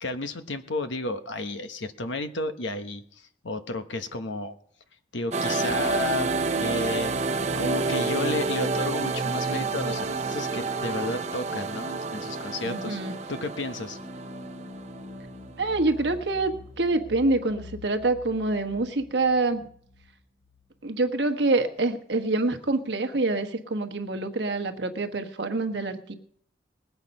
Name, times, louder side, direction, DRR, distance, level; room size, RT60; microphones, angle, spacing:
voice 1, 0.0-3.0 3.4-4.5 5.1-6.3 6.6-7.1 7.5-14.0, left 2 dB, 75° left, 9 dB, 1.1 m, -32 dB
sound 1, 5.3-15.6, right 4 dB, 35° right, 0.7 m, -29 dB
sound 2, 5.7-21.2, right 1 dB, 45° left, 2.3 m, -43 dB
voice 2, 12.6-13.1 15.6-19.7 20.8-26.1, right 2 dB, 65° right, 6 dB, 1.2 m, -26 dB
20.0 x 8.1 x 5.4 m, 0.65 s
head